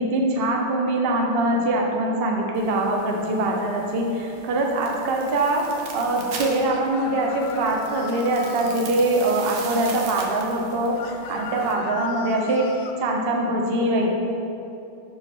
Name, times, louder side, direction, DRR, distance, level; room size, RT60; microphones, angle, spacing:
voice 1, 0.0-12.7 13.0-14.1, right 2 dB, 85° right, 1 dB, 0.5 m, -23 dB
sound 1, 2.5-11.7, right 4 dB, 65° right, 1.5 m, -40 dB
sound 2, 6.6-8.8 10.9-13.0, left 7 dB, 80° left, 1.4 m, -36 dB
7.5 x 4.7 x 6.0 m, 2.8 s
omnidirectional pair, 2.4 m